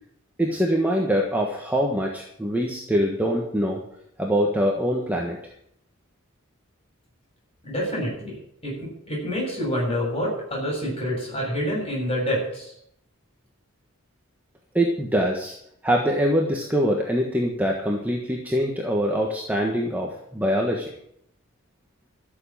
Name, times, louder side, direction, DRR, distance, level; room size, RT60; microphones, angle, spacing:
voice 1, 0.4-3.8 4.2-5.4 14.7-15.5 15.8-20.9, equal, 5° right, -1 dB, 1.5 m, -24 dB
voice 2, 7.6-8.3 8.6-8.7 9.1-12.7, equal, 25° left, -2 dB, 7.3 m, -27 dB
13.5 x 7.3 x 8.8 m, 0.72 s
head